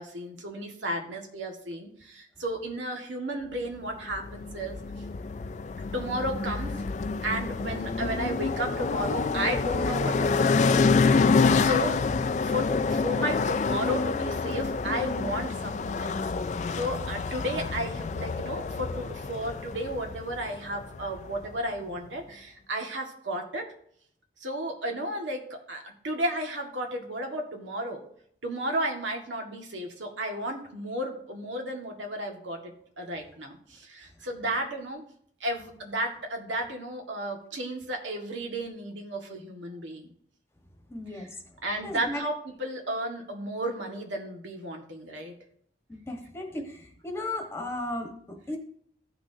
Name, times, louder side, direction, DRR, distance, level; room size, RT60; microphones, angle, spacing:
voice 1, 0.0-4.8 5.9-6.8 7.2-10.8 11.1-12.1 12.4-23.7 24.4-28.1 28.4-35.1 35.4-40.1 41.1-41.3 41.6-45.3, right 1 dB, 85° right, 2 dB, 1.7 m, -33 dB
sound 1, 4.1-21.5, left 4 dB, 40° left, 0.3 m, -27 dB
voice 2, 40.9-41.3 41.8-42.2 45.9-48.6, left 1 dB, 15° left, 2 dB, 1.2 m, -35 dB
15.5 x 6.2 x 2.7 m, 0.66 s
head